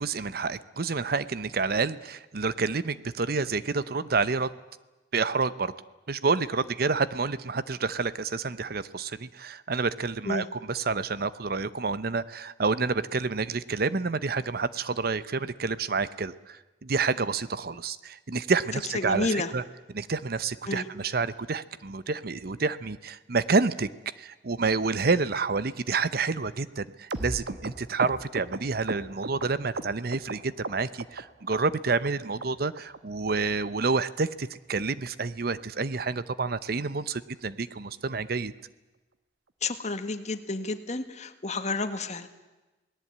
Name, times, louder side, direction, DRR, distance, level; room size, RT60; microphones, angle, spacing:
voice 1, 0.0-4.5 5.1-5.7 6.1-19.6 19.9-23.9 24.2-38.5, right 4 dB, 60° right, 15 dB, 0.8 m, -29 dB
voice 2, 18.9-19.5 20.7-20.9 39.6-42.3, left 3 dB, 40° left, 9 dB, 1.7 m, -30 dB
sound 1, 27.1-30.3 30.6-31.2 31.5-32.1 32.4-32.5 32.8-33.0 33.3-33.4 33.6-33.9 34.2-34.3 34.5-34.7 35.1-35.2 35.4-35.6 35.9-36.0 36.3-36.5 36.8-36.9, right 2 dB, 80° right, 1.3 m, -36 dB
28.5 x 18.5 x 8.7 m, 1.1 s
head